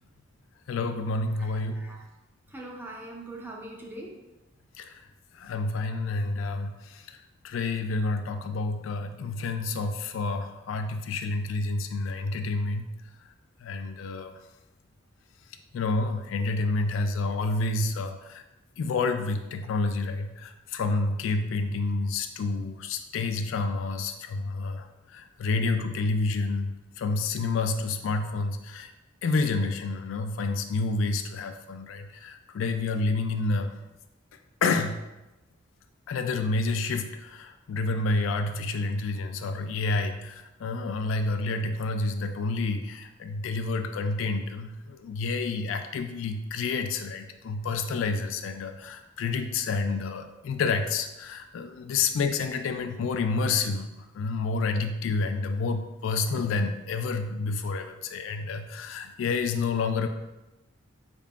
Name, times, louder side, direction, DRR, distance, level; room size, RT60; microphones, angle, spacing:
voice 1, 0.7-1.8 4.8-4.9 5.3-7.2 7.4-12.8 13.6-14.4 15.7-18.4 18.8-24.9 25.1-28.9 29.2-33.7 34.6-35.0 36.1-60.1, left 3 dB, 70° left, 7 dB, 0.3 m, -29 dB
voice 2, 1.4-2.0 2.5-4.1, right 1 dB, 10° right, -1 dB, 0.5 m, -42 dB
4.5 x 3.6 x 2.4 m, 1.0 s
head